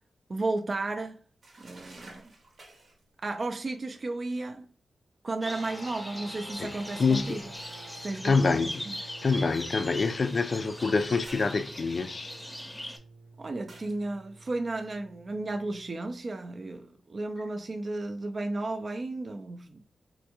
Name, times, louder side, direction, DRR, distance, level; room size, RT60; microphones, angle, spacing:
voice 1, 0.3-1.2 1.6-2.3 3.2-4.7 5.2-7.4 8.0-8.4 8.9-9.0 13.4-19.8, right 2 dB, 45° right, 0.3 m, -33 dB
sound 1, 1.4-3.0 6.6-8.1 10.5-12.2 13.7-14.0, right 2 dB, 65° right, 0.8 m, -52 dB
sound 2, 5.4-13.0, left 1 dB, 10° left, 0.7 m, -41 dB
sound 3, 5.4-15.9, right 2 dB, 85° right, 0.9 m, -50 dB
voice 2, 6.6-7.5 8.2-8.9 9.2-12.3, left 4 dB, 55° left, 0.3 m, -26 dB
3.4 x 2.6 x 2.7 m
cardioid pair, 55°, 0 cm